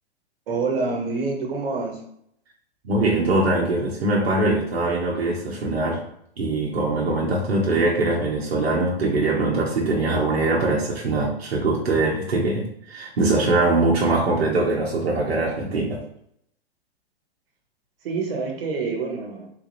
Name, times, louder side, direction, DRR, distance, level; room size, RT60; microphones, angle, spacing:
voice 1, 0.5-2.0 18.0-19.5, right 4 dB, 65° right, 2 dB, 1.1 m, -27 dB
voice 2, 2.8-6.0 6.4-16.0, right 2 dB, 85° right, -3 dB, 0.9 m, -22 dB
3.7 x 2.5 x 3.0 m, 0.70 s
hypercardioid pair, 120°, 30 cm